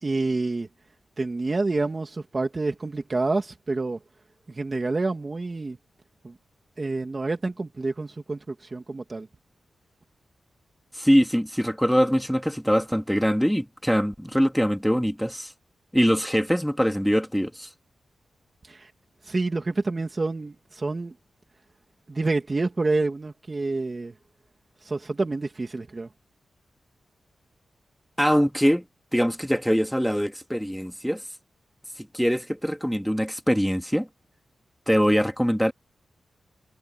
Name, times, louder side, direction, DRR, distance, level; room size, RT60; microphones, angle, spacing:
voice 1, 0.0-0.7 1.2-4.0 4.5-5.8 6.2-6.3 6.8-9.3 18.6-18.9 19.2-21.1 22.1-24.1 24.8-26.1, right 3 dB, 30° right, 2.5 m, -28 dB
voice 2, 11.0-15.5 15.9-17.7 28.2-28.8 29.1-31.2 32.1-34.1 34.9-35.7, equal, ahead, 2.1 m, -23 dB
wide cardioid pair, 115°, 0 cm